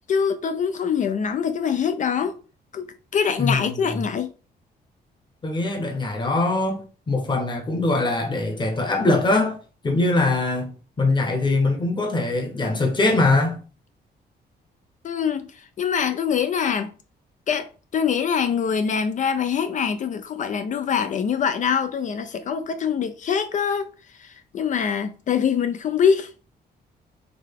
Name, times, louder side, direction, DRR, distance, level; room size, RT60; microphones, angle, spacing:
voice 1, 0.1-2.3 2.7-4.3 15.0-15.5 15.8-16.9 17.5-23.9 24.2-26.3, left 7 dB, 45° left, 0.4 m, -24 dB
voice 2, 3.4-4.0 5.4-6.8 7.1-9.6 9.8-10.7 11.0-13.6, left 2 dB, 25° left, 1.0 m, -22 dB
3.9 x 3.2 x 3.5 m
cardioid pair, 150°, 18 cm